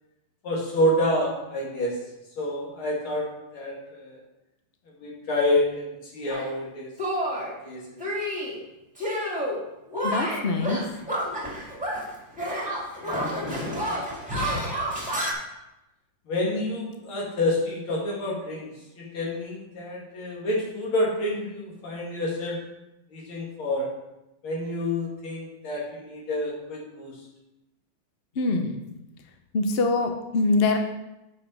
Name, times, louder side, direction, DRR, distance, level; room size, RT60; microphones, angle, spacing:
voice 1, 0.4-2.0 2.4-4.2 5.0-6.9 7.3-7.4 7.6-8.0 13.0-13.8 16.3-18.7 18.9-22.6 23.1-23.9 24.4-27.2, left 1 dB, 75° left, -3 dB, 2.9 m, -28 dB
Shatter, 6.3-6.5 7.0-7.5 8.0-8.6 9.0-9.6 9.9-12.1 12.4-15.3, equal, 5° right, 1.8 m, -29 dB
voice 2, 10.0-10.8 28.4-28.8 29.5-30.8, left 3 dB, 60° left, 5 dB, 0.6 m, -24 dB
8.3 x 5.6 x 4.9 m, 0.95 s
omnidirectional pair, 2.3 m